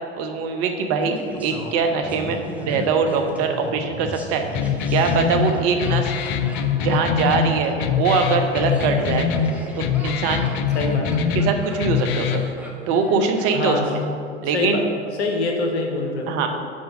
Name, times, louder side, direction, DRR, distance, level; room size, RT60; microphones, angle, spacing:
voice 1, 0.2-4.4 4.9-6.1 6.8-9.3 9.8-10.5 11.3-12.4 12.9-14.0 14.4-14.8 16.3-16.5, right 5 dB, 45° right, 5 dB, 0.9 m, -22 dB
Laughter, 1.0-14.0 14.3-14.4, right 1 dB, 5° right, 1.1 m, -37 dB
sound 1, 4.5-12.5, left 7 dB, 35° left, 0.4 m, -23 dB
voice 2, 10.7-11.1 13.5-13.8 14.5-14.8 15.2-16.3, left 3 dB, 70° left, 2 dB, 1.1 m, -24 dB
6.3 x 4.9 x 6.1 m, 2.4 s
figure-of-eight pair, 85°, 34 cm